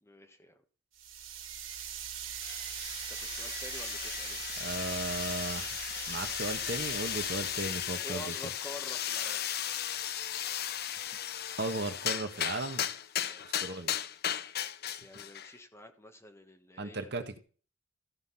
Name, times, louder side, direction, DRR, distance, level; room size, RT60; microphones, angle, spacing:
voice 1, 0.0-0.6 3.1-4.4 8.0-9.5 13.2-13.5 15.0-17.1, left 1 dB, 15° left, 5 dB, 1.4 m, -48 dB
sound 1, 1.0-8.2, right 8 dB, 85° right, 2.2 m, -41 dB
sound 2, 2.4-15.5, left 10 dB, 50° left, 0.7 m, -36 dB
voice 2, 4.6-5.8 6.1-8.3 11.6-12.8 13.4-13.9 16.8-17.4, right 2 dB, 55° right, 8 dB, 1.4 m, -36 dB
14.5 x 5.8 x 5.7 m, 0.39 s
head